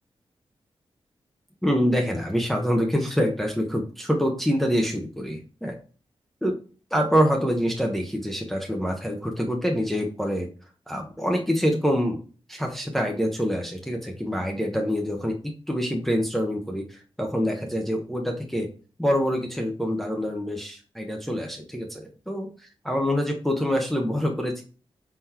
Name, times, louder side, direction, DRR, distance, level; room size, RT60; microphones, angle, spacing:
voice 1, 1.6-5.7 6.4-6.6 6.9-10.5 10.9-12.2 12.5-18.7 19.0-22.5 22.8-24.6, equal, ahead, 1 dB, 0.7 m, -26 dB
4.2 x 3.8 x 2.8 m, 0.37 s
wide cardioid pair, 95°, 10 cm